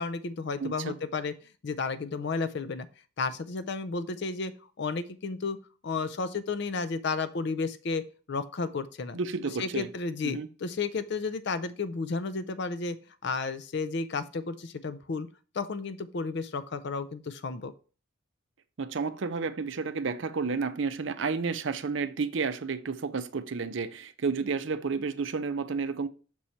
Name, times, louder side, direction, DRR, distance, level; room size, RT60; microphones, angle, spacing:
voice 1, 0.0-1.3 1.6-2.9 3.2-4.5 4.8-5.6 5.8-9.2 9.6-13.0 13.2-15.3 15.5-17.7, left 4 dB, 55° left, 0.5 m, -32 dB
voice 2, 0.6-0.9 9.1-9.9 10.2-10.5 18.8-26.1, right 4 dB, 60° right, 0.5 m, -31 dB
6.2 x 4.2 x 4.4 m
head